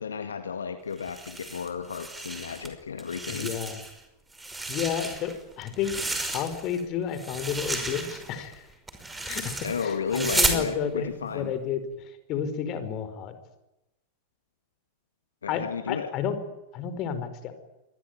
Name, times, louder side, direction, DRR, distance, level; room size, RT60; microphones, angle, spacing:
voice 1, 0.0-3.5 9.6-11.5 15.4-16.1, left 6 dB, 70° left, 8 dB, 1.8 m, -33 dB
sound 1, 1.0-2.7 3.0-4.0 4.3-6.8 7.1-10.6, right 2 dB, 10° right, 5.4 m, -32 dB
voice 2, 3.3-3.8 4.7-8.7 9.2-13.4 15.5-16.4 16.7-17.5, left 8 dB, 40° left, 10 dB, 5.0 m, -31 dB
26.5 x 21.5 x 9.5 m, 0.94 s
figure-of-eight pair, 90°, 0 cm